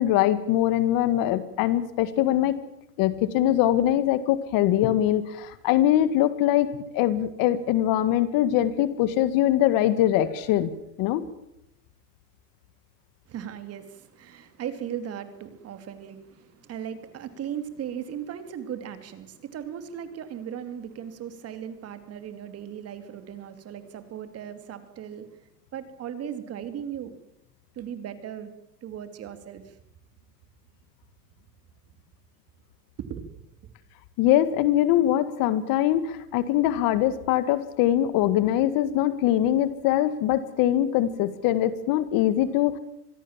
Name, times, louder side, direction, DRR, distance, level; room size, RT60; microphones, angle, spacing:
voice 1, 0.0-2.6 3.0-10.7 11.0-11.3 34.2-42.8, left 12 dB, 45° left, 14 dB, 2.0 m, -22 dB
voice 2, 13.3-27.1 27.7-28.5 28.8-29.8 33.0-33.3 33.6-33.7, right 9 dB, 30° right, 10 dB, 2.7 m, -37 dB
25.5 x 21.0 x 7.5 m, 0.83 s
supercardioid pair, 135°, 49 cm